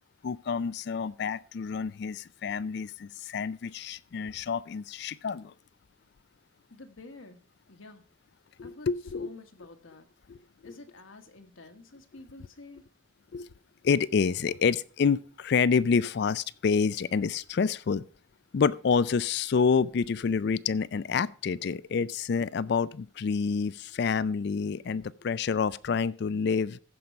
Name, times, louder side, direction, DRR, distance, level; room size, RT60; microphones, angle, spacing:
voice 1, 0.2-5.5 8.6-9.3 10.3-10.4 10.6-10.7 13.3-13.5 13.8-18.0 18.5-26.8, left 5 dB, 55° left, 0.3 m, -28 dB
voice 2, 6.7-7.4 7.7-8.0 8.6-8.9 9.1-10.1 10.3-12.8, left 3 dB, 75° left, 1.4 m, -49 dB
14.5 x 5.3 x 4.6 m
head